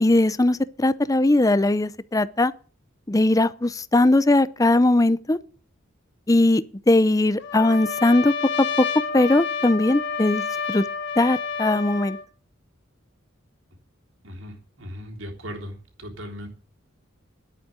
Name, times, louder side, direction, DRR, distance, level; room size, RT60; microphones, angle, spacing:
voice 1, 0.0-2.5 3.1-5.4 6.3-8.3 8.6-8.9 9.1-10.4 10.7-10.8 11.2-12.2, left 2 dB, 15° left, 0.5 m, -19 dB
Trumpet, 7.4-12.2, left 5 dB, 60° left, 1.7 m, -29 dB
voice 2, 14.2-16.5, equal, 70° right, 3.6 m, -38 dB
11.0 x 8.3 x 9.0 m
head